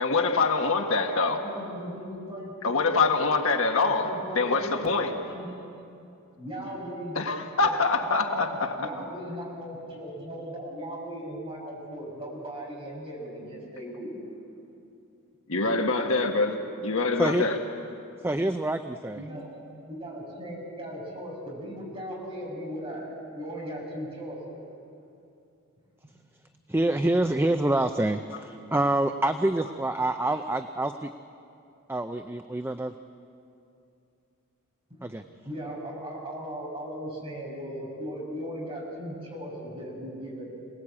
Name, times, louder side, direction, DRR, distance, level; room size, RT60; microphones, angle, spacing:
voice 1, 0.0-1.4 2.6-4.1 4.3-5.1 7.1-8.7 15.5-17.6, left 3 dB, 70° left, 4 dB, 1.7 m, -25 dB
voice 2, 0.9-2.9 3.7-5.6 6.4-7.2 7.6-14.3 19.1-19.6 19.9-24.6 30.3-30.4 35.2-40.5, equal, 25° right, -3 dB, 7.1 m, -38 dB
voice 3, 18.2-19.2 26.7-31.1 31.9-32.9 35.0-35.2, right 1 dB, 10° right, 8 dB, 0.5 m, -26 dB
26.5 x 19.0 x 8.6 m, 2.6 s
head